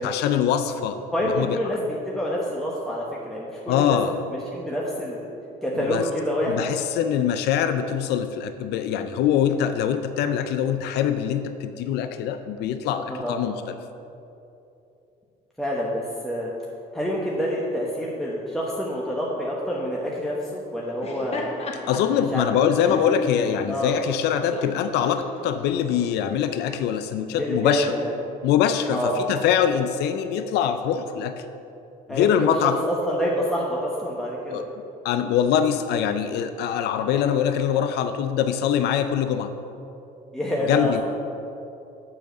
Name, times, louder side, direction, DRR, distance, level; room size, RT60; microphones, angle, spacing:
voice 1, 0.0-1.0 1.4-1.6 3.7-4.2 5.9-6.0 6.5-13.7 21.9-27.9 28.4-31.4 32.1-32.8 34.5-34.7 35.0-39.5 40.7-41.0, left 9 dB, 80° left, 9 dB, 0.5 m, -23 dB
voice 2, 1.1-4.0 4.3-5.2 5.6-6.7 13.1-13.4 15.6-16.5 16.9-21.5 22.1-22.5 23.7-24.0 27.3-28.1 28.9-29.3 32.1-34.6 40.3-41.0, equal, ahead, -5 dB, 1.0 m, -27 dB
Laughter, 20.8-26.1, left 3 dB, 40° left, 1.1 m, -36 dB
7.6 x 4.8 x 6.5 m, 2.8 s
cardioid pair, 110°, 17 cm